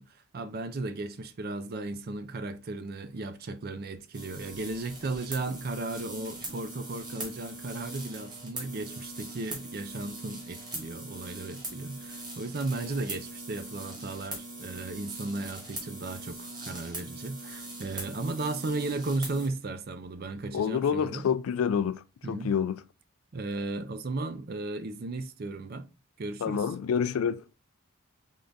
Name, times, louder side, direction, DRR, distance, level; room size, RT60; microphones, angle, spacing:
voice 1, 0.0-21.3 22.2-22.5 23.3-25.9 26.2-26.7, right 2 dB, 45° right, 0.5 m, -35 dB
sound 1, 4.1-19.5, right 2 dB, 20° right, 1.4 m, -41 dB
voice 2, 20.5-22.8 26.4-27.4, left 7 dB, 75° left, 0.3 m, -28 dB
3.7 x 3.4 x 3.9 m
head